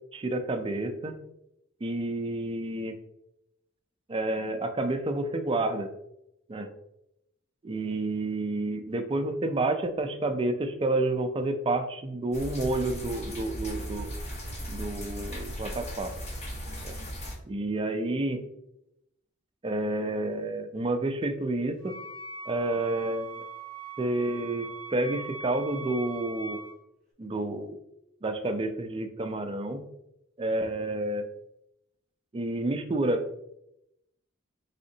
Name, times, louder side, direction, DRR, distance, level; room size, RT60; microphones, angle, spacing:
voice 1, 0.1-1.1 1.8-3.0 4.1-5.9 6.5-6.7 7.6-14.1 14.7-16.1 16.8-17.0 17.5-18.4 19.6-21.9 22.5-23.4 24.0-26.6 27.2-27.8 28.2-29.8 30.4-31.2 32.3-33.3, right 2 dB, 25° right, 7 dB, 0.4 m, -29 dB
sound 1, 12.3-17.3, equal, 35° left, 1.0 m, -37 dB
Wind instrument woodwind instrument, 21.8-26.7, right 3 dB, 5° left, 0.9 m, -41 dB
4.2 x 3.6 x 2.7 m, 0.81 s
head